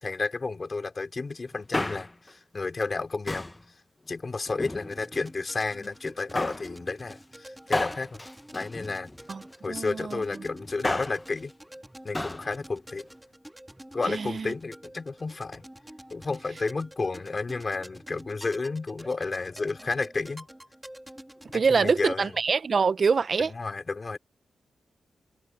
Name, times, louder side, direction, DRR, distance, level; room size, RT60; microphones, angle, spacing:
voice 1, 0.0-3.5 4.1-8.2 8.5-9.1 9.6-11.5 12.0-13.1 13.9-15.7 16.1-20.5 21.5-22.3 23.5-24.2, left 3 dB, 40° left, 3.7 m, -32 dB
Male speech man speaking, 1.5-2.3 3.3-3.6 4.5-5.3 6.3-6.7 7.7-9.4 10.6-11.3 12.1-12.5 12.8-12.9, left 1 dB, 20° left, 1.1 m, -33 dB
sound 1, 4.8-21.9, right 1 dB, 5° right, 4.1 m, -48 dB
voice 2, 9.7-10.2 14.1-14.5 21.5-23.5, right 5 dB, 55° right, 0.8 m, -25 dB
cardioid pair, 55°, 0 cm